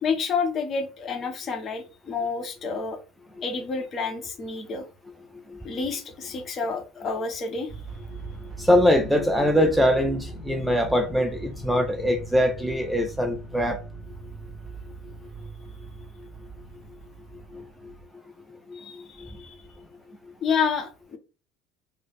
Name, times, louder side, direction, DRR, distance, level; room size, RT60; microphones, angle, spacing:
voice 1, 0.0-3.0 3.4-4.8 5.6-7.7 18.7-19.6 20.4-21.2, left 5 dB, 40° left, 0.9 m, -29 dB
sound 1, 7.7-18.0, right 3 dB, 30° right, 1.4 m, -40 dB
voice 2, 8.6-13.8 17.5-17.9 18.7-19.0, equal, ahead, 0.5 m, -23 dB
3.3 x 2.1 x 3.8 m
figure-of-eight pair, 65°, 0 cm